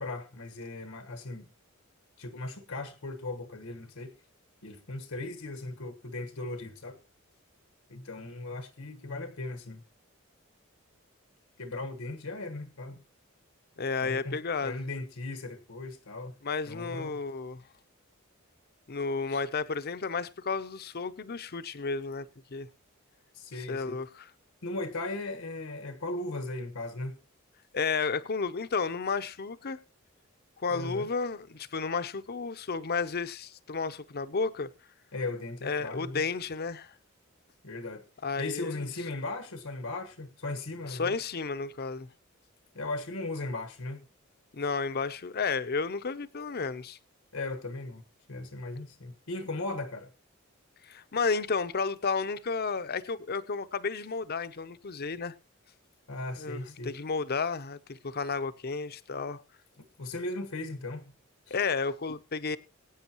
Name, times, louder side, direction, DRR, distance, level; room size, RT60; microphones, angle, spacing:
voice 1, 0.0-1.5 2.2-4.1 4.6-7.0 7.9-9.8 11.6-13.0 14.0-16.3 16.7-17.2 19.3-19.4 23.3-24.0 24.6-27.2 30.7-31.1 35.1-36.2 37.6-38.0 38.4-41.1 42.7-44.0 47.3-48.0 48.3-50.1 56.1-56.9 60.0-61.1 61.5-61.6, left 2 dB, 90° left, 1.4 m, -37 dB
voice 2, 13.8-14.8 16.4-17.6 18.9-22.3 22.5-22.7 23.5-24.3 27.7-29.8 30.6-34.7 35.6-36.9 38.2-38.9 40.9-42.1 44.5-47.0 50.8-55.3 56.4-59.4 61.5-62.6, left 4 dB, 50° left, 0.7 m, -32 dB
22.0 x 9.0 x 3.0 m
head